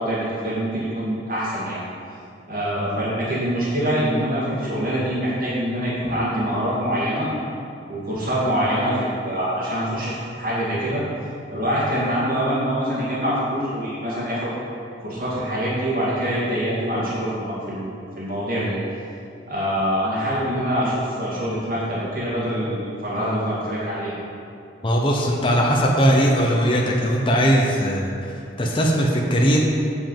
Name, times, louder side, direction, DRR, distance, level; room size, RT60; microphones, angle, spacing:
voice 1, 0.0-1.8 2.5-7.3 7.9-11.0 11.5-14.5 15.0-18.8 19.5-24.2, equal, 50° right, -8 dB, 2.2 m, -24 dB
voice 2, 24.8-29.6, equal, 25° left, -1 dB, 0.8 m, -19 dB
8.1 x 5.1 x 7.4 m, 2.6 s
head